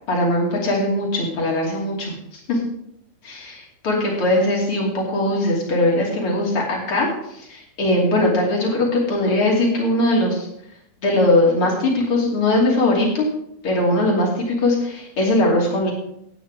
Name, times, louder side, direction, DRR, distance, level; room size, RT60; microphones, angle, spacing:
voice 1, 0.1-2.1 2.5-2.6 3.2-3.5 3.8-10.5 11.0-13.3 13.6-15.9, left 1 dB, 35° left, -2 dB, 2.6 m, -20 dB
17.0 x 9.2 x 3.7 m, 0.78 s
omnidirectional pair, 5.8 m